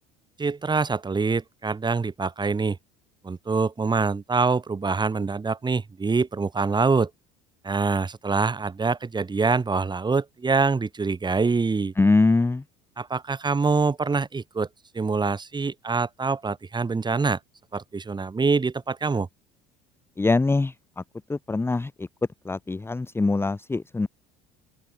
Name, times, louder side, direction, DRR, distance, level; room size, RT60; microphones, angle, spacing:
voice 1, 0.4-2.8 3.2-7.1 7.6-11.9 13.0-14.7 14.9-17.4 17.7-19.3, right 4 dB, 20° right, 3.8 m, -25 dB
voice 2, 12.0-12.6 20.2-21.0 21.3-22.1 22.4-24.1, left 3 dB, 10° left, 0.8 m, -23 dB
open air
supercardioid pair, 85°, 20 cm